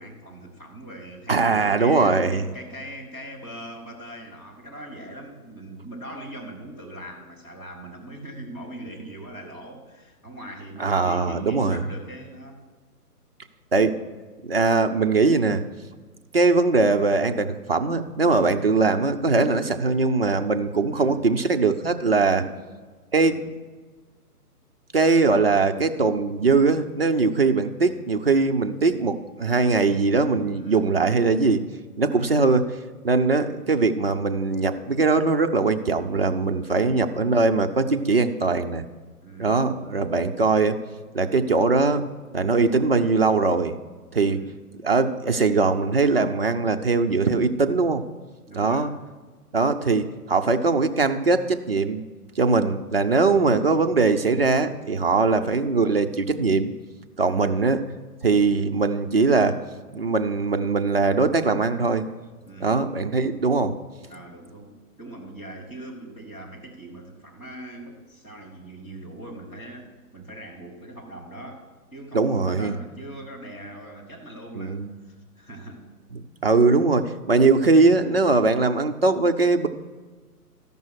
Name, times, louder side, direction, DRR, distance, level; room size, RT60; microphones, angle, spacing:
voice 1, 0.0-12.7 18.5-18.8 19.6-19.8 20.9-21.2 22.2-22.6 23.2-23.5 30.5-30.9 32.1-32.4 36.6-36.9 39.2-39.7 44.2-44.6 48.5-48.9 53.3-53.5 55.2-55.6 57.2-57.6 62.4-62.8 64.1-75.8, right 1 dB, 10° left, -7 dB, 1.1 m, -41 dB
voice 2, 1.3-2.4 10.8-11.8 13.7-14.0 14.4-15.6 16.3-22.4 23.1-23.4 24.9-31.6 32.0-32.7 33.0-38.8 39.4-40.8 41.1-42.1 42.3-43.7 44.1-44.4 44.8-48.0 48.6-48.9 49.5-52.0 52.4-56.7 57.2-57.8 58.2-59.6 59.9-62.0 62.6-63.8 72.1-72.7 74.5-74.9 76.1-79.7, right 3 dB, 40° right, 6 dB, 0.4 m, -21 dB
14.0 x 5.4 x 6.3 m, 1.4 s
hypercardioid pair, 165°, 47 cm